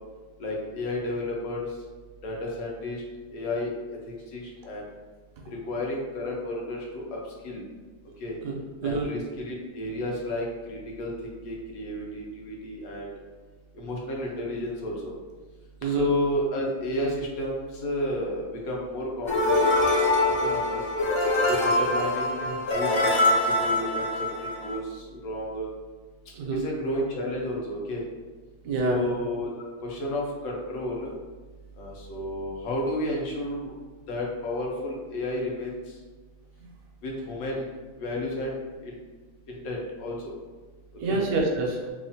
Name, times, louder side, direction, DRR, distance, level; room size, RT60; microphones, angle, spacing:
voice 1, 0.4-1.6 2.2-3.0 3.3-3.7 4.1-4.8 5.6-7.6 8.2-8.3 8.8-13.1 13.8-15.1 15.8-19.9 20.2-20.8 21.5-25.7 26.5-28.0 28.8-31.1 31.8-33.7 34.1-35.8 37.0-37.7 38.0-38.6 38.8-39.0 39.5-40.3 41.1-41.2, left 1 dB, 85° left, -2 dB, 1.1 m, -32 dB
voice 2, 8.4-9.1 15.8-16.0 26.3-26.6 28.6-29.1 41.0-41.8, right 3 dB, 80° right, 0 dB, 1.0 m, -27 dB
sound 1, 19.3-24.8, left 1 dB, 40° left, 0.4 m, -24 dB
3.0 x 2.1 x 2.6 m, 1.3 s
omnidirectional pair, 1.5 m